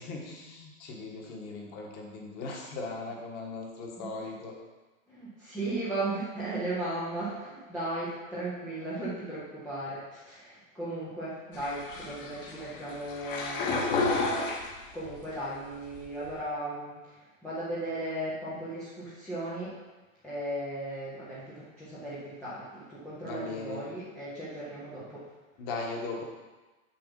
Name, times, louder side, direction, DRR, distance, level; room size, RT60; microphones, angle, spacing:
voice 1, 0.0-4.5 23.2-23.8 25.6-26.2, left 3 dB, 25° left, 0 dB, 1.3 m, -38 dB
voice 2, 5.1-14.1 14.9-19.8 20.2-25.3, right 1 dB, ahead, -11 dB, 0.5 m, -36 dB
sound 1, 11.5-15.2 15.6-16.3, left 3 dB, 40° left, 1.5 m, -32 dB
7.0 x 6.9 x 5.3 m, 1.2 s
hypercardioid pair, 165°, 41 cm